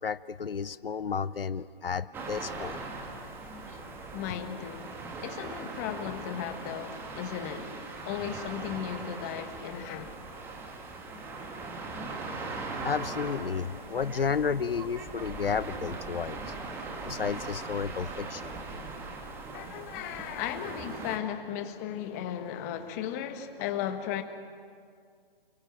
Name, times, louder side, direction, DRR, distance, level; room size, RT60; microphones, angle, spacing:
voice 1, 0.0-2.8 12.8-16.5 17.1-18.6, left 6 dB, 75° left, 0.8 m, -32 dB
sound 1, 2.1-21.2, right 3 dB, 5° right, 1.5 m, -40 dB
voice 2, 4.1-7.7 8.0-10.1 19.5-24.2, left 10 dB, 15° left, 1.4 m, -36 dB
29.0 x 23.0 x 8.9 m
figure-of-eight pair, 155°, 29 cm